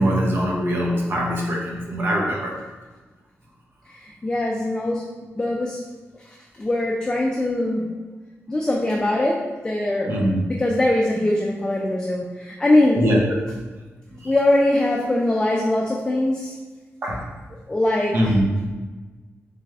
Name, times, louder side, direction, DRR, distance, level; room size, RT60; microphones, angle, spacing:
voice 1, 0.0-2.5 10.1-10.4 13.0-13.2 14.2-14.3 17.0-17.2 18.1-18.5, equal, 50° right, -2 dB, 0.8 m, -22 dB
voice 2, 3.9-5.0 5.3-5.8 6.6-7.9 8.5-10.1 10.4-13.0 14.2-16.5 17.7-18.4, left 1 dB, 15° left, -2 dB, 0.3 m, -22 dB
3.4 x 3.4 x 3.3 m, 1.3 s
wide cardioid pair, 165°, 5 cm